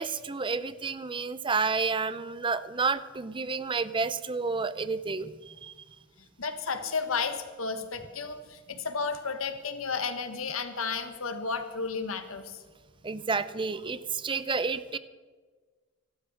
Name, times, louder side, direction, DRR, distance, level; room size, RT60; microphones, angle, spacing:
voice 1, 0.0-5.7 13.0-15.0, right 4 dB, 25° right, 15 dB, 0.6 m, -30 dB
voice 2, 6.4-12.6, left 5 dB, 80° left, 8 dB, 1.4 m, -33 dB
13.0 x 12.0 x 6.4 m, 1.4 s
head